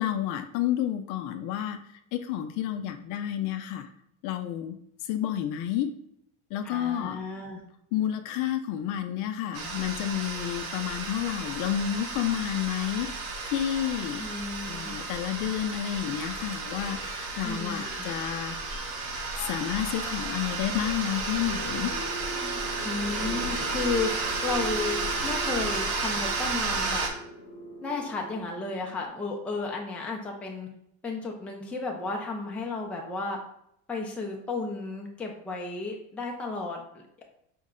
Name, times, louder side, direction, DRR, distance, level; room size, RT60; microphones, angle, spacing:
voice 1, 0.0-1.8 2.1-3.9 4.2-4.8 5.1-5.9 6.5-7.2 7.9-13.1 13.5-14.3 14.7-18.6 19.4-21.9, left 11 dB, 60° left, 8 dB, 0.5 m, -30 dB
voice 2, 6.6-7.6 14.2-14.9 17.4-18.1 22.8-27.1 27.8-30.7 31.0-33.4 33.9-37.2, left 3 dB, 5° left, 0 dB, 0.4 m, -33 dB
sound 1, 9.5-27.1, right 3 dB, 55° right, 0.8 m, -33 dB
sound 2, 16.8-29.1, equal, 35° left, 0.8 m, -41 dB
4.6 x 2.1 x 3.7 m, 0.73 s
cardioid pair, 140°, 36 cm